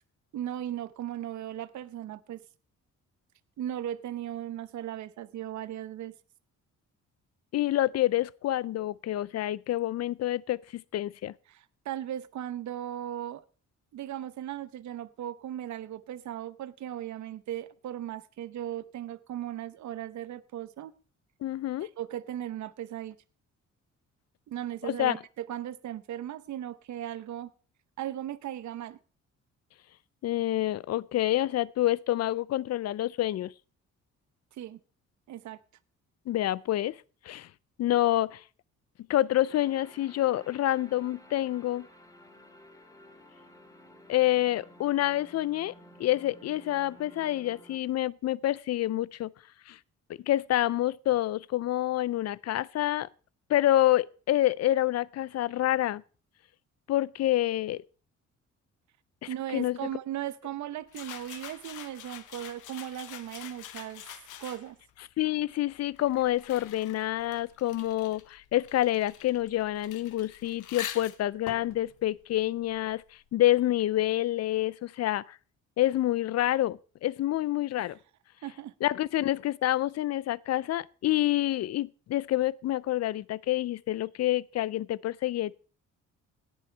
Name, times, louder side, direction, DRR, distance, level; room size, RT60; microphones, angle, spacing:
voice 1, 0.3-2.4 3.6-6.1 11.5-13.4 13.9-20.9 21.8-23.2 24.5-27.5 28.0-29.0 34.6-34.8 35.3-35.6 59.3-64.0 64.4-64.8 77.8-77.9 78.4-78.7, right 11 dB, 70° right, 0.9 m, -37 dB
voice 2, 7.5-11.3 21.4-21.9 24.8-25.2 30.2-33.5 36.3-37.0 37.2-37.5 37.8-38.4 39.1-41.9 44.1-45.7 46.0-49.3 49.7-49.8 50.3-53.1 53.5-56.0 56.9-57.8 59.5-59.8 65.2-73.0 73.3-75.4 75.8-78.0 78.8-85.5, left 14 dB, 55° left, 0.5 m, -27 dB
sound 1, 39.4-47.8, left 1 dB, 10° left, 2.2 m, -53 dB
sound 2, 60.9-64.9 65.7-73.1, left 11 dB, 85° left, 1.1 m, -45 dB
17.5 x 6.3 x 4.5 m
cardioid pair, 90°, 30 cm